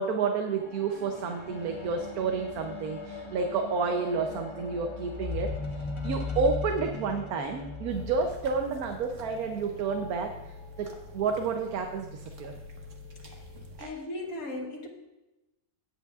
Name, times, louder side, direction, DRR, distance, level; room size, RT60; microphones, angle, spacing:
voice 1, 0.0-10.3 10.8-10.9 11.1-12.5 13.8-13.9, right 5 dB, 75° right, 4 dB, 1.2 m, -30 dB
sound 1, 0.6-10.1 10.9-11.0, left 4 dB, 25° left, 0.8 m, -38 dB
sound 2, 7.9-13.8, left 2 dB, 55° right, 1.6 m, -46 dB
voice 2, 13.8-14.9, left 1 dB, 70° left, 2 dB, 1.8 m, -37 dB
17.5 x 8.2 x 2.4 m, 1.0 s
omnidirectional pair, 1.6 m